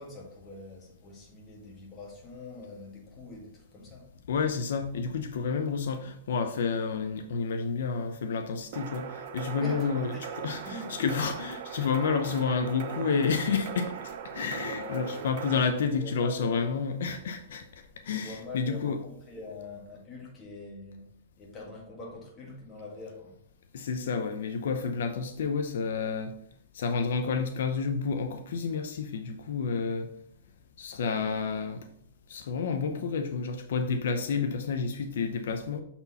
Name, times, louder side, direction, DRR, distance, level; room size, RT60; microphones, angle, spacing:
voice 1, 0.0-4.1 9.6-10.3 10.6-11.0 14.8-16.7 18.1-21.1 21.4-23.4, left 2 dB, 20° left, 1.9 m, -44 dB
voice 2, 4.3-10.1 10.4-19.0 23.7-26.3 26.7-30.1 30.8-31.9 32.3-35.8, left 5 dB, 80° left, 0.7 m, -30 dB
sound 1, 8.7-15.6, right 7 dB, 50° right, 0.7 m, -39 dB
6.8 x 4.4 x 4.1 m
hypercardioid pair, 150°, 0 cm